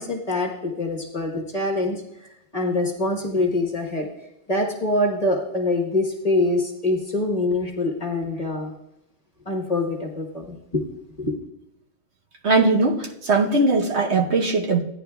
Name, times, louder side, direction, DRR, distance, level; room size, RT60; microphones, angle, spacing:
voice 1, 0.0-4.1 4.5-8.7 9.4-10.8 11.2-11.3, left 2 dB, 30° left, 0 dB, 1.2 m, -25 dB
voice 2, 12.4-14.8, right 3 dB, 60° right, 1 dB, 1.2 m, -20 dB
15.5 x 10.0 x 2.3 m, 0.86 s
omnidirectional pair, 1.4 m